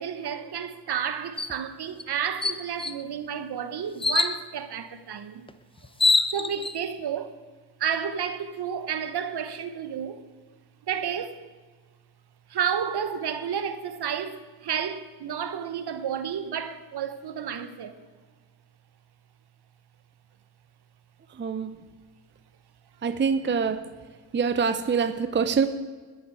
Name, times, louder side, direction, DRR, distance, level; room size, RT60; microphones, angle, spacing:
voice 1, 0.0-5.5 6.0-7.3 7.8-10.2 10.9-11.4 12.5-17.9, right 8 dB, 55° right, 1.2 m, -31 dB
sound 1, 1.4-1.6 2.0-2.1 2.4-3.0 4.0-4.4 5.5-5.6 5.8-6.7, left 3 dB, 10° left, 0.7 m, -24 dB
voice 2, 21.4-21.7 23.0-23.8 24.3-25.7, right 6 dB, 25° right, 0.7 m, -25 dB
21.0 x 7.3 x 4.8 m
supercardioid pair, 65°, 47 cm